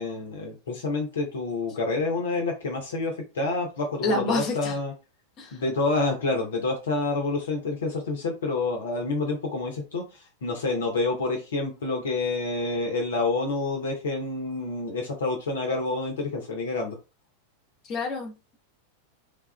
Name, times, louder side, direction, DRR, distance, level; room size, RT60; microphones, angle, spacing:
voice 1, 0.0-4.9 5.5-17.0, left 3 dB, 65° left, 2 dB, 0.7 m, -28 dB
voice 2, 4.0-4.7 5.4-5.5 17.9-18.3, left 2 dB, 35° left, 2 dB, 0.9 m, -27 dB
3.3 x 2.3 x 2.2 m, 0.29 s
figure-of-eight pair, 90°, 0 cm